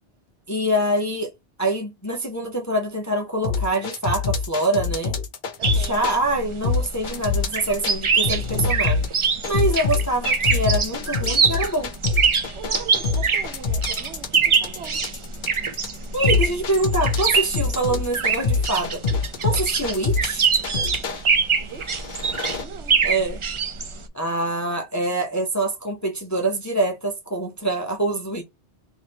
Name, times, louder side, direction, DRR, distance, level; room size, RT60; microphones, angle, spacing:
voice 1, 0.5-1.3 1.6-5.1 5.7-11.9 16.1-19.0 19.4-20.5 23.0-23.4 24.1-28.4, right 1 dB, 20° left, 0.5 m, -25 dB
sound 1, 3.4-6.2 6.6-7.9 8.2-21.2 21.8-22.6, left 4 dB, 55° left, 0.7 m, -25 dB
sound 2, 5.6-24.1, right 5 dB, 50° right, 0.4 m, -24 dB
voice 2, 5.6-6.0 12.5-15.0 21.6-22.2 22.6-23.0, right 7 dB, 85° right, 1.2 m, -40 dB
3.1 x 2.6 x 4.4 m
omnidirectional pair, 1.1 m